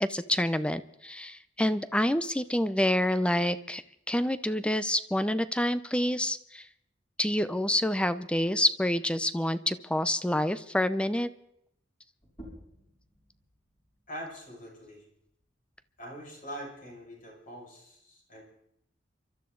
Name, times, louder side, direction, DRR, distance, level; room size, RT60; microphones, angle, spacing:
voice 1, 0.0-6.6 7.2-11.3, left 1 dB, 5° left, 14 dB, 0.6 m, -27 dB
sound 1, 12.2-17.4, equal, 25° left, 6.1 m, -55 dB
voice 2, 14.1-15.0 16.0-18.4, equal, 45° left, -2 dB, 5.9 m, -43 dB
28.5 x 13.0 x 3.9 m, 0.78 s
head